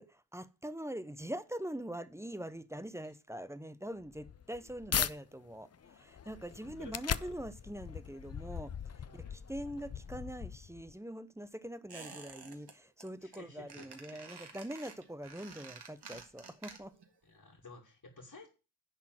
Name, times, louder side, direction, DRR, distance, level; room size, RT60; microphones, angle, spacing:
voice 1, 0.0-17.0, right 1 dB, 5° right, 0.6 m, -43 dB
sound 1, 4.0-5.1 5.7-10.9, left 7 dB, 40° left, 0.4 m, -39 dB
voice 2, 6.6-7.3 9.0-9.4 13.2-14.6 17.2-18.5, left 3 dB, 55° left, 2.6 m, -54 dB
Squeak, 11.9-12.7 13.0-13.4 13.7-17.1 17.4-17.5, right 4 dB, 65° right, 1.7 m, -50 dB
10.5 x 4.0 x 7.6 m
wide cardioid pair, 85°, 43 cm